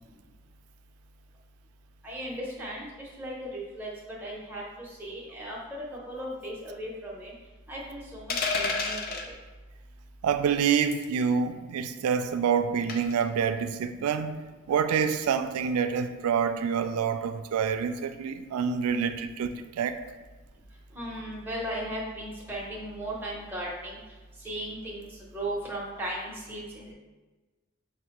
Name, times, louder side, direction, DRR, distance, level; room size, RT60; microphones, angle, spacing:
voice 1, 2.0-3.9 4.2-5.6 6.1-7.3 7.7-9.2 21.0-24.0 24.4-25.1 25.3-26.9, right 1 dB, 10° right, -5 dB, 0.7 m, -36 dB
sound 1, 8.3-9.3 10.9-11.1 12.9-13.2, left 4 dB, 45° left, 0.4 m, -29 dB
voice 2, 10.2-20.0, right 7 dB, 90° right, 9 dB, 0.3 m, -27 dB
6.2 x 2.1 x 2.9 m, 1.2 s
head